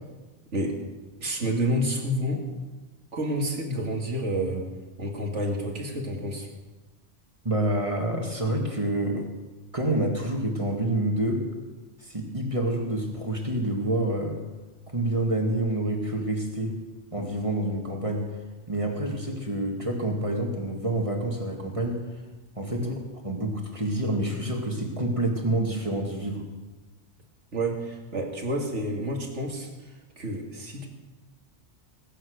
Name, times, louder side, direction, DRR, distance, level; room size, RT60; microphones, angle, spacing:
voice 1, 1.2-2.4 3.1-4.7 5.0-6.5 22.8-23.0 27.5-30.9, right 1 dB, 70° right, 1 dB, 2.6 m, -29 dB
voice 2, 7.4-9.2 9.7-11.4 12.0-14.4 14.9-16.8 17.1-18.4 18.7-22.0 22.6-22.9 23.2-26.4, right 1 dB, 25° right, 1 dB, 2.3 m, -27 dB
20.5 x 9.4 x 6.5 m, 1.2 s
omnidirectional pair, 1.3 m